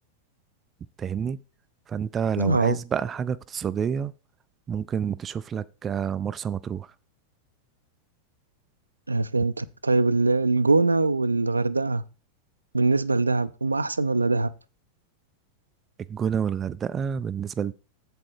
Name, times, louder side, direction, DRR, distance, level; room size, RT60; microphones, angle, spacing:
voice 1, 1.0-1.4 1.9-4.1 4.7-6.9 16.0-17.7, right 7 dB, 25° right, 0.4 m, -28 dB
voice 2, 2.4-2.8 9.1-12.0 12.7-14.5, right 3 dB, 80° right, 0.5 m, -22 dB
7.6 x 7.5 x 4.7 m
figure-of-eight pair, 90°, 0 cm